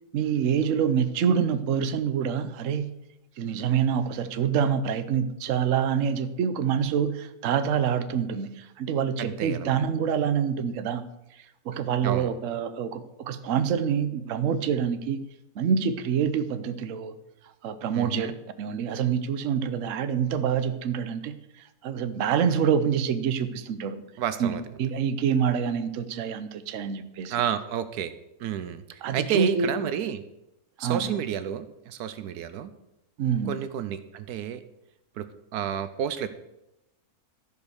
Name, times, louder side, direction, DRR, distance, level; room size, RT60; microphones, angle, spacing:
voice 1, 0.1-3.0 3.4-11.0 11.4-15.2 15.6-17.2 17.6-18.3 18.6-21.4 21.8-24.0 24.4-27.4 29.0-29.7 30.8-31.2 33.2-33.6, right 7 dB, 60° right, 11 dB, 1.0 m, -26 dB
voice 2, 9.2-9.7 12.0-12.3 17.9-18.3 24.2-24.6 27.3-28.1 28.4-28.8 29.1-30.2 30.8-32.7 33.5-34.6 35.2-35.3 35.5-36.3, right 9 dB, 75° right, 12 dB, 1.2 m, -30 dB
13.5 x 5.2 x 6.4 m, 0.89 s
omnidirectional pair, 1.7 m